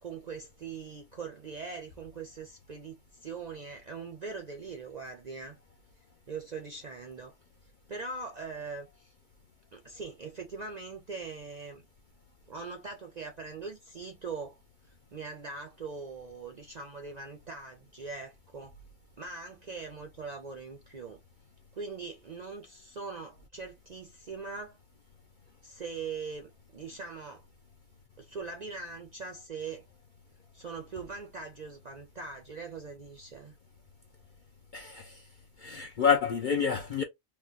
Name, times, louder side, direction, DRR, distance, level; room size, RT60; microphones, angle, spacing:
voice 1, 0.0-5.6 6.3-7.3 7.9-9.1 9.7-11.8 12.5-14.6 14.8-18.7 19.2-21.2 21.7-24.8 25.6-27.4 28.2-29.9 30.5-33.6, right 4 dB, 55° right, 0.5 m, -41 dB
voice 2, 34.7-35.2 35.6-37.0, left 7 dB, 60° left, 0.5 m, -28 dB
2.9 x 2.2 x 3.8 m
omnidirectional pair, 1.3 m